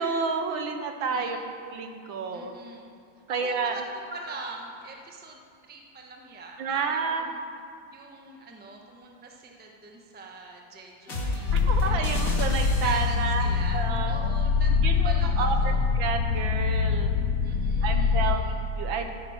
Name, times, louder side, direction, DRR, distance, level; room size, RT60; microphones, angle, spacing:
voice 1, 0.0-1.4 1.6-2.5 3.3-3.7 6.6-7.3 11.5-13.5 13.7-14.1 14.7-17.1 17.8-18.4 18.8-19.1, right 5 dB, 70° right, 6 dB, 1.6 m, -30 dB
voice 2, 1.1-1.5 2.3-2.9 3.3-7.4 7.9-15.9 17.4-18.6, right 3 dB, 10° right, 1 dB, 0.7 m, -43 dB
sound 1, 11.1-13.4, left 1 dB, 40° left, 2.0 m, -31 dB
sound 2, 11.5-18.4, left 5 dB, 75° left, 0.8 m, -24 dB
13.5 x 9.8 x 5.9 m, 2.4 s
omnidirectional pair, 2.3 m